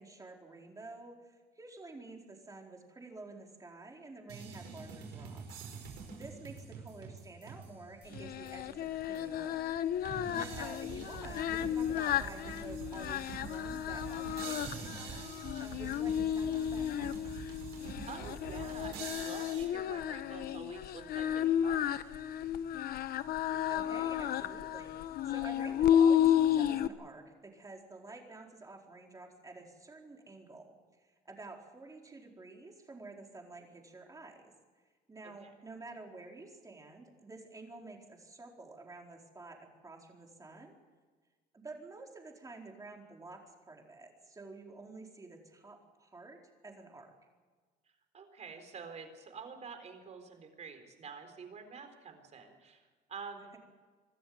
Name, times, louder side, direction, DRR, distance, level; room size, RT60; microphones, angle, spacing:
voice 1, 0.0-5.4 5.8-9.6 10.0-17.1 23.5-30.7 31.0-34.5 35.1-40.8 41.5-47.1, right 3 dB, 20° right, 1 dB, 4.4 m, -50 dB
sound 1, 4.3-8.7 9.2-9.3 10.1-19.7, right 6 dB, 80° right, 5.2 m, -46 dB
Singing, 8.1-26.9, left 10 dB, 65° left, 1.0 m, -32 dB
voice 2, 18.1-21.9 35.2-35.5 48.1-53.6, right 5 dB, 40° right, 6 dB, 4.2 m, -48 dB
25.0 x 13.5 x 9.5 m, 1.4 s
cardioid pair, 110°, 17 cm